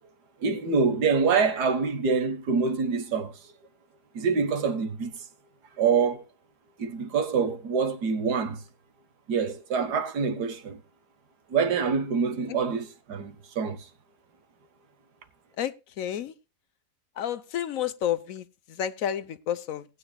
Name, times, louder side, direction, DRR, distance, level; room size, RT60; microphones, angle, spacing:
voice 1, 0.4-3.4 4.1-5.2 5.8-6.2 6.8-8.6 9.3-10.8 11.5-13.9, right 5 dB, 80° right, 1.8 m, -26 dB
voice 2, 15.6-16.3 17.2-19.9, left 10 dB, 65° left, 1.1 m, -31 dB
18.5 x 9.6 x 2.2 m
omnidirectional pair, 1.7 m